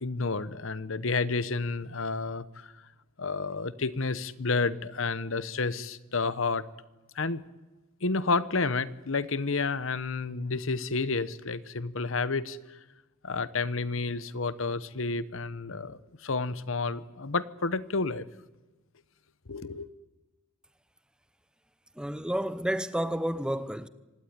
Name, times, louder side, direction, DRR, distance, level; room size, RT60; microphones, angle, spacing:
voice 1, 0.0-2.8 3.2-6.6 7.1-7.4 8.0-12.8 13.2-18.3 19.5-19.9, left 4 dB, 65° left, 1.0 m, -30 dB
voice 2, 22.0-23.9, equal, 5° right, 0.9 m, -30 dB
25.5 x 17.5 x 9.8 m
head